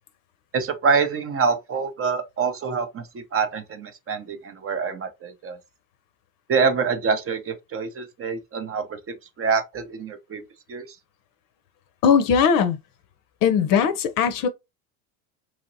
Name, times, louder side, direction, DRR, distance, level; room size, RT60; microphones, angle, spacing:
voice 1, 0.5-5.6 6.5-9.0 9.4-10.4 10.7-10.9, right 5 dB, 30° right, 0.6 m, -25 dB
voice 2, 12.0-12.8 13.4-14.5, left 7 dB, 50° left, 0.6 m, -19 dB
3.0 x 2.8 x 2.6 m
hypercardioid pair, 90°, 45 cm